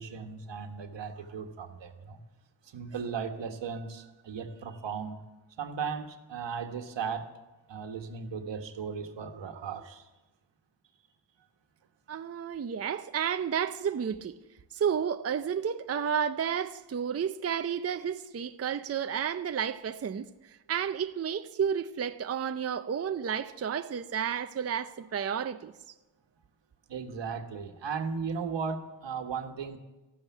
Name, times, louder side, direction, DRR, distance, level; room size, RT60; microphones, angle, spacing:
voice 1, 0.0-2.2 2.6-5.2 5.6-7.3 7.7-10.1 26.9-29.8, right 6 dB, 80° right, 1.6 m, -36 dB
voice 2, 12.1-14.4 14.7-20.3 20.7-25.7, right 8 dB, 35° right, 0.5 m, -31 dB
14.0 x 12.0 x 8.3 m
wide cardioid pair, 115°, 44 cm